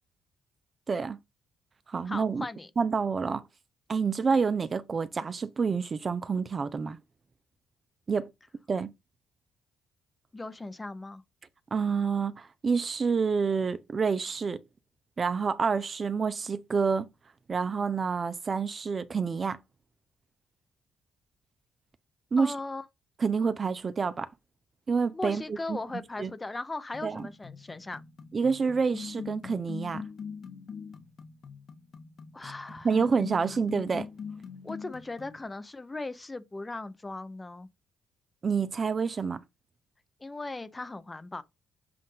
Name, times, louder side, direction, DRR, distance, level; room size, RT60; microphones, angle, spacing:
voice 1, 0.9-1.2 1.9-2.5 2.8-3.5 3.9-7.0 8.1-8.3 8.7-8.9 11.7-14.6 15.2-17.1 17.5-19.6 22.3-22.5 23.2-24.3 24.9-25.4 25.7-25.8 26.2-26.3 27.0-27.3 28.3-30.0 32.8-34.1 38.4-39.4, right 5 dB, 40° right, 0.6 m, -28 dB
voice 2, 2.1-2.7 10.3-11.2 22.4-22.8 25.1-28.0 32.3-33.0 34.6-37.7 40.2-41.4, left 2 dB, 20° left, 0.8 m, -38 dB
sound 1, 26.9-35.4, left 6 dB, 55° left, 1.0 m, -43 dB
7.6 x 2.6 x 5.5 m
cardioid pair, 90°, 0 cm